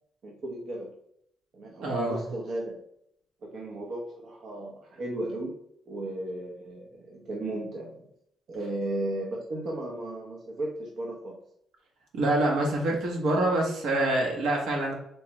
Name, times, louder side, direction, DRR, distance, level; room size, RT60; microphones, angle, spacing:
voice 1, 0.2-0.9 1.5-2.8 3.4-5.6 5.9-8.1 8.5-11.4, right 1 dB, 60° right, -2 dB, 0.7 m, -35 dB
voice 2, 1.8-2.2 12.1-15.0, right 1 dB, 85° right, -1 dB, 1.1 m, -26 dB
3.4 x 3.1 x 2.9 m, 0.72 s
cardioid pair, 90°, 0 cm